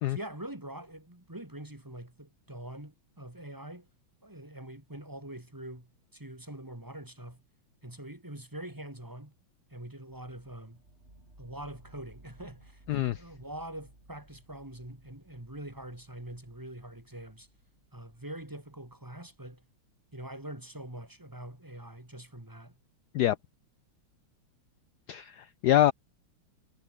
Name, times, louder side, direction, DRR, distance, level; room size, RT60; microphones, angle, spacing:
voice 1, 0.1-3.9 4.2-7.4 7.8-9.3 9.7-10.8 11.4-17.5 17.9-19.6 20.1-22.7, right 1 dB, 10° right, 2.6 m, -44 dB
sound 1, 10.1-19.9, right 1 dB, 30° right, 7.9 m, -59 dB
voice 2, 25.1-25.9, left 13 dB, 75° left, 0.9 m, -25 dB
omnidirectional pair, 2.3 m